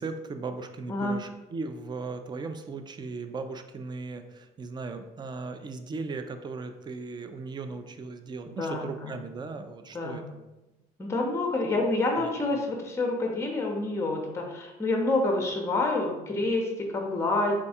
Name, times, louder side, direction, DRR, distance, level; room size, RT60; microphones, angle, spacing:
voice 1, 0.0-10.5 12.1-12.3, right 4 dB, 25° right, 8 dB, 0.4 m, -37 dB
voice 2, 8.6-9.1 9.9-10.2 11.0-17.5, left 2 dB, 15° left, 1 dB, 0.7 m, -28 dB
3.5 x 2.3 x 4.0 m, 1.0 s
cardioid pair, 110°, 17 cm